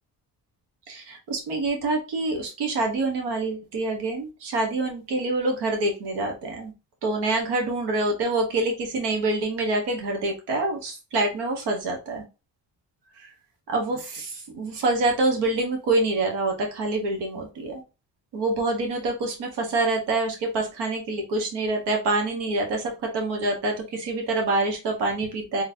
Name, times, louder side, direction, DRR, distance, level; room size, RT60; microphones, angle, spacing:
voice 1, 0.9-6.7 7.0-12.2 13.7-17.8 18.3-25.6, right 2 dB, 90° right, 2 dB, 1.2 m, -26 dB
3.9 x 3.1 x 2.7 m, 0.29 s
cardioid pair, 100°, 40 cm